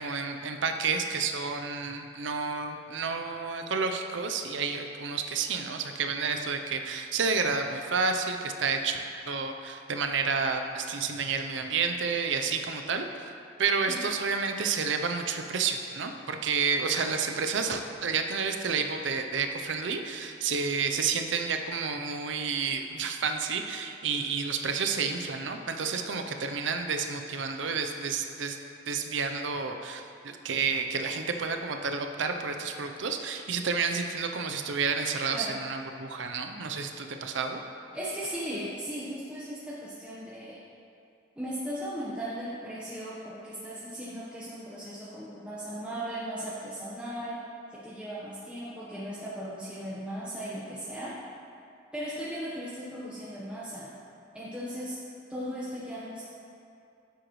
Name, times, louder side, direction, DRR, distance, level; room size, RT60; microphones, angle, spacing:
voice 1, 0.0-13.1 13.6-28.6 28.9-37.6, right 5 dB, 75° right, 5 dB, 0.6 m, -30 dB
voice 2, 37.9-40.6 41.4-47.4 47.7-51.1 51.9-53.9 54.3-55.0 55.3-56.3, equal, 5° right, -9 dB, 1.0 m, -37 dB
10.0 x 7.9 x 3.1 m, 2.6 s
head